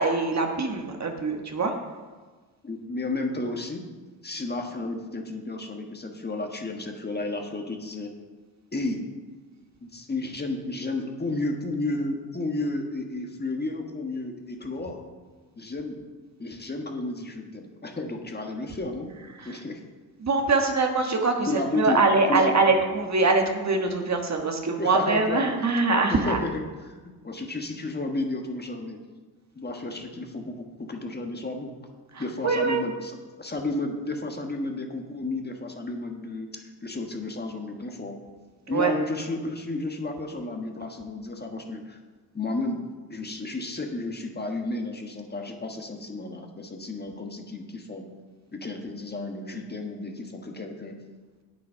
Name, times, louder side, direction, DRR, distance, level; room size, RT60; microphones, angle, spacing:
voice 1, 0.0-1.7 20.2-21.5 21.7-26.4 32.4-32.8 38.7-38.9, right 3 dB, 40° right, 4 dB, 1.4 m, -23 dB
voice 2, 2.6-3.8 4.2-8.1 8.7-9.0 9.8-15.0 15.5-16.0 16.4-19.1 19.4-19.8 21.5-22.0 22.3-22.7 24.8-25.8 26.1-27.0 27.2-29.0 29.5-31.7 32.2-38.2 38.7-42.0 42.3-42.8 43.1-48.0 48.5-50.9, left 2 dB, 25° left, 3 dB, 1.5 m, -32 dB
8.4 x 8.2 x 5.7 m, 1.3 s
cardioid pair, 75°, 42 cm